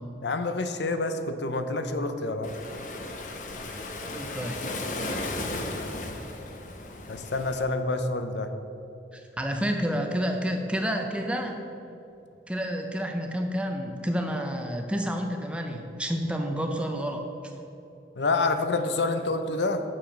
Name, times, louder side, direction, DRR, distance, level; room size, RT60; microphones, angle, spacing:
voice 1, 0.2-2.5 7.1-8.5 18.2-19.8, left 3 dB, 80° left, 8 dB, 0.7 m, -27 dB
Waves surf, 2.4-7.6, left 2 dB, 45° left, 0.8 m, -35 dB
voice 2, 4.1-4.6 9.1-11.6 12.5-17.2, equal, 5° right, 3 dB, 0.7 m, -29 dB
7.3 x 7.1 x 6.3 m, 2.8 s
head